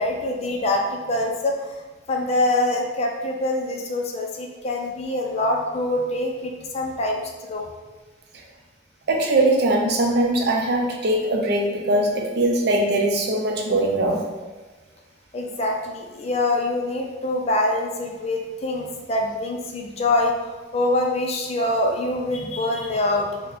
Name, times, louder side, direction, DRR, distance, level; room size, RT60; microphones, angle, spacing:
voice 1, 0.0-1.7 2.1-7.6 15.3-23.4, left 1 dB, 35° left, 1 dB, 0.4 m, -25 dB
voice 2, 9.1-14.2, right 1 dB, 65° right, 1 dB, 0.5 m, -21 dB
4.0 x 2.1 x 2.5 m, 1.3 s
head